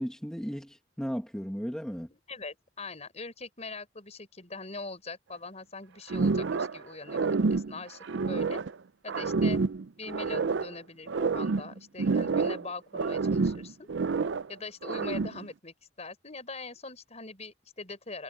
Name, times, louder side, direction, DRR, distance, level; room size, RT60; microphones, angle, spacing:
voice 1, 0.0-2.1, equal, 5° left, 1.9 m, -35 dB
voice 2, 2.1-8.6 9.0-9.6 10.0-13.9 14.5-18.2, left 3 dB, 35° left, 5.9 m, -42 dB
sound 1, 6.1-6.8 7.1-8.7 9.1-10.7 11.1-12.7 12.9-14.5 14.8-15.5, right 4 dB, 75° right, 0.5 m, -28 dB
head